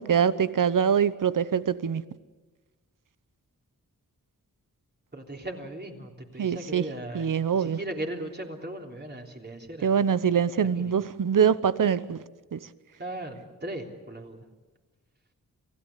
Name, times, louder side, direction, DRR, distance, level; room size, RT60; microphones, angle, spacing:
voice 1, 0.0-2.0 6.4-6.8 7.1-7.8 9.8-12.2 12.5-12.6, right 7 dB, 65° right, 0.9 m, -24 dB
voice 2, 5.1-10.2 10.6-11.0 13.0-14.4, right 1 dB, 30° right, 3.4 m, -38 dB
28.0 x 16.5 x 8.4 m
wide cardioid pair, 100°, 34 cm